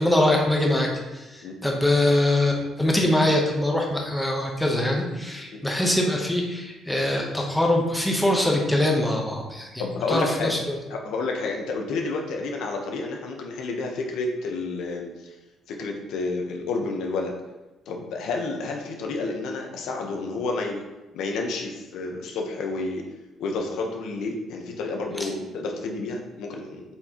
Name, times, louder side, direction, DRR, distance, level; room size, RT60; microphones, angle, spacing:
voice 1, 0.0-10.6, left 1 dB, 5° left, 0 dB, 1.0 m, -23 dB
voice 2, 9.8-10.6 10.9-15.4 15.7-17.3 17.9-20.8 21.1-23.0 23.4-26.8, left 3 dB, 80° left, 2 dB, 1.0 m, -30 dB
8.5 x 4.5 x 3.0 m, 1.1 s
cardioid pair, 150°, 0 cm